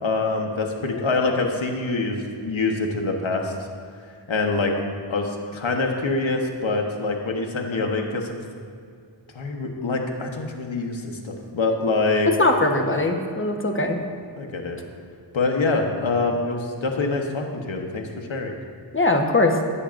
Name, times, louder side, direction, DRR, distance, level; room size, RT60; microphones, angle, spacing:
voice 1, 0.0-3.5 4.3-4.7 5.1-8.3 9.3-12.3 14.4-14.8 15.3-18.5, left 3 dB, 80° left, 2 dB, 1.2 m, -25 dB
voice 2, 12.4-14.0 18.9-19.5, left 2 dB, 25° left, 3 dB, 1.1 m, -20 dB
16.5 x 8.5 x 2.6 m, 2.3 s
wide cardioid pair, 70°, 46 cm